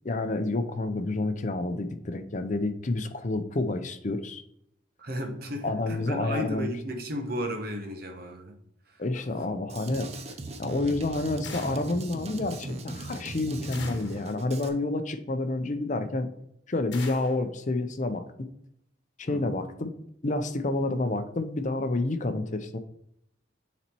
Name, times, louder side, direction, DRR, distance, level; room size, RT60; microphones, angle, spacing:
voice 1, 0.0-4.4 5.6-6.7 9.0-10.1 10.6-16.3 16.7-18.5 19.2-19.9 20.2-22.8, left 2 dB, 40° left, 9 dB, 0.6 m, -29 dB
voice 2, 5.0-8.6 8.9-9.0 19.3-19.5, equal, 50° right, 4 dB, 1.1 m, -34 dB
Drum kit, 9.7-14.7, right 2 dB, 35° right, 0.7 m, -39 dB
sound 1, 11.4-12.0 13.7-14.2 16.9-17.4, left 5 dB, 65° left, 1.1 m, -42 dB
7.1 x 4.2 x 4.5 m, 0.75 s
head